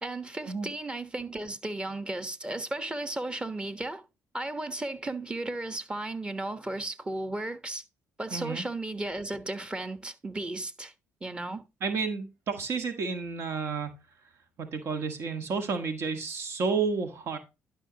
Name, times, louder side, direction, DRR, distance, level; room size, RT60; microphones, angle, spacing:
voice 1, 0.0-4.0 4.3-7.8 8.2-10.9 11.2-11.6, right 2 dB, 20° right, 1.2 m, -35 dB
voice 2, 8.3-8.6 11.8-13.9 14.6-17.4, right 5 dB, 60° right, 1.5 m, -31 dB
11.5 x 5.6 x 2.9 m
supercardioid pair, 75°, 5 cm